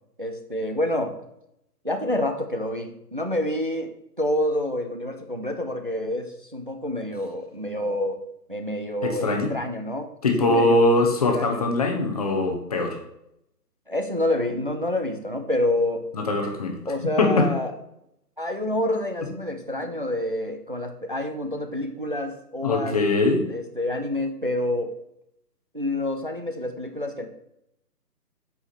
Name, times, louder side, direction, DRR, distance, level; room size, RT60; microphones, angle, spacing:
voice 1, 0.2-1.2 1.8-3.9 4.2-8.2 8.5-10.1 10.4-10.8 11.3-11.6 13.9-16.1 16.9-17.7 18.4-23.0 23.5-24.9 25.7-27.3, left 1 dB, 35° right, 5 dB, 0.4 m, -28 dB
voice 2, 9.0-9.5 10.2-13.0 16.1-16.8 17.2-17.5 22.6-23.4, left 2 dB, 25° left, 3 dB, 0.9 m, -22 dB
8.1 x 4.9 x 4.2 m, 0.80 s
figure-of-eight pair, 155°, 49 cm